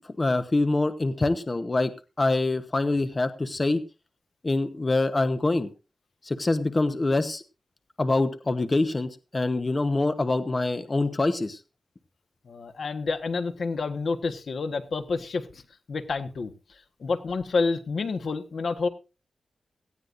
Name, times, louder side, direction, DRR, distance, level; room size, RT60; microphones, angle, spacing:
voice 1, 0.2-1.9 2.2-3.8 4.4-5.7 6.2-7.4 8.0-11.6, left 2 dB, 30° left, 9 dB, 1.0 m, -25 dB
voice 2, 12.4-15.6 15.9-18.9, left 4 dB, 70° left, 8 dB, 1.3 m, -29 dB
18.0 x 15.0 x 2.6 m, 0.31 s
wide cardioid pair, 115°, 0 cm